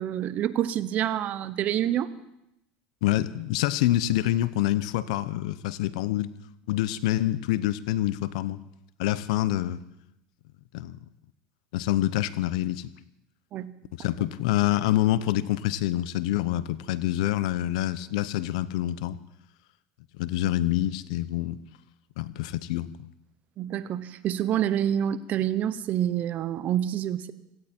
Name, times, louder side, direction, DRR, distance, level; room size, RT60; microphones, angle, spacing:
voice 1, 0.0-2.1 13.5-13.7 23.6-27.3, right 11 dB, 45° right, 15 dB, 0.9 m, -27 dB
voice 2, 3.0-6.3 6.7-8.6 9.0-9.8 10.7-11.0 11.7-12.9 13.9-19.2 20.1-21.6 22.2-23.1, left 14 dB, 80° left, 17 dB, 0.7 m, -26 dB
17.0 x 16.0 x 4.5 m, 0.84 s
supercardioid pair, 115°, 4 cm